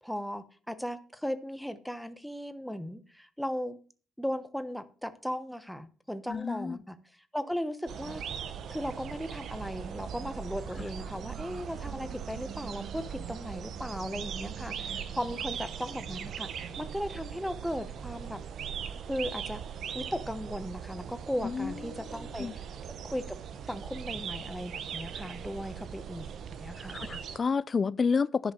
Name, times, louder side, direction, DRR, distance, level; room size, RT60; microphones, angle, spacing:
voice 1, 0.0-3.8 4.2-7.0 7.3-8.2 8.7-18.4 19.1-19.6 19.9-22.5 23.0-23.4 23.7-27.0, equal, ahead, 1.1 m, -37 dB
voice 2, 6.3-6.8 21.4-22.0 22.4-22.6 26.9-28.5, left 5 dB, 40° left, 0.5 m, -30 dB
sound 1, 7.9-27.4, right 8 dB, 65° right, 1.0 m, -40 dB
10.5 x 5.2 x 7.1 m
cardioid pair, 90°, 0 cm